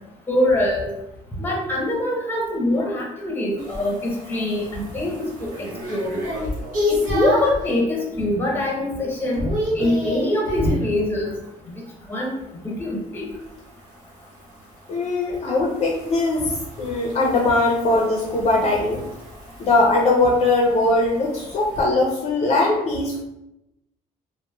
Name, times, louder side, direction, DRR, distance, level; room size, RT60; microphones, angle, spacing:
voice 1, 0.3-0.9 1.4-6.2 6.9-9.4 9.7-11.3 12.1-12.3 12.6-13.3, left 1 dB, 15° left, -2 dB, 0.7 m, -24 dB
sound 1, 3.6-7.6 8.1-8.6 8.8-10.9 13.4-21.8, left 1 dB, 65° right, 0.8 m, -30 dB
voice 2, 14.9-19.0 19.6-23.2, left 2 dB, 45° left, -1 dB, 0.4 m, -20 dB
3.0 x 2.0 x 2.2 m, 0.87 s
cardioid pair, 115°, 14 cm